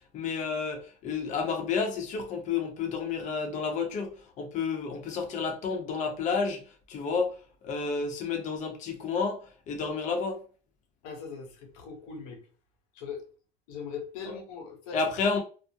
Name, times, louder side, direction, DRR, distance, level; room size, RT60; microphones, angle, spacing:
voice 1, 0.1-6.6 6.9-7.4 7.6-10.4 14.9-15.4, left 5 dB, 45° left, 0.7 m, -30 dB
voice 2, 11.0-12.4 12.9-13.2 13.7-15.0, left 6 dB, 90° left, 0.9 m, -40 dB
2.3 x 2.0 x 2.7 m
cardioid pair, 135°, 18 cm